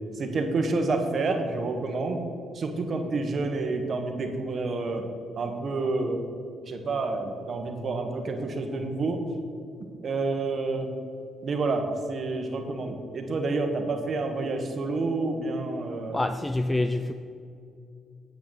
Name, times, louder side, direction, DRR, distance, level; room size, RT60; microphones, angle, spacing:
voice 1, 0.1-2.2 2.5-5.1 5.4-6.2 6.7-9.2 10.0-10.9 11.4-16.2, right 3 dB, 50° right, 1.2 m, -29 dB
voice 2, 16.1-17.1, left 2 dB, 15° left, 0.3 m, -26 dB
8.7 x 8.4 x 4.0 m
cardioid pair, 90°, 0 cm